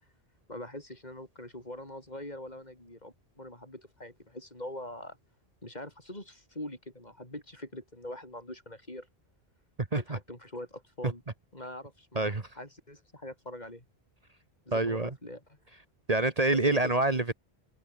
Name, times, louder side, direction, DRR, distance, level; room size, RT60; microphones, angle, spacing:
voice 1, 0.5-5.2 5.6-9.1 9.9-11.2 11.5-13.8 14.7-15.4 16.5-16.9, left 1 dB, 40° left, 6.2 m, -43 dB
voice 2, 9.8-10.2 11.0-11.1 12.1-12.5 14.7-15.1 16.1-17.3, right 2 dB, 35° right, 1.7 m, -27 dB
omnidirectional pair, 1.1 m